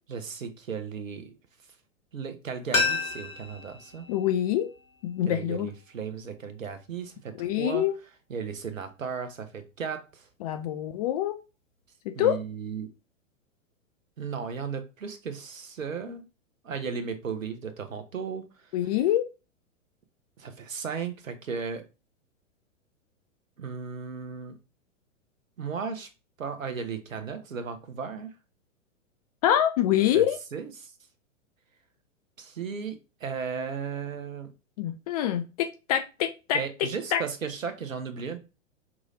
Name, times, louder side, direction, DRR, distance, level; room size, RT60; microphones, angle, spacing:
voice 1, 0.1-1.4 2.1-4.1 5.3-7.9 8.3-10.3 12.1-12.9 14.2-16.2 16.6-18.5 20.4-21.8 23.6-24.6 25.6-26.1 26.4-28.3 30.1-30.9 32.4-34.5 36.5-38.4, right 6 dB, 80° right, 1.0 m, -35 dB
sound 1, 2.7-5.5 5.8-5.9, left 4 dB, 90° left, 1.4 m, -31 dB
voice 2, 4.1-4.7 5.0-5.7 7.4-7.9 10.4-11.4 12.1-12.4 18.7-19.2 29.4-30.4 34.8-36.6 37.1-37.2, left 11 dB, 30° left, 0.4 m, -25 dB
5.9 x 3.1 x 2.7 m
figure-of-eight pair, 105°, 39 cm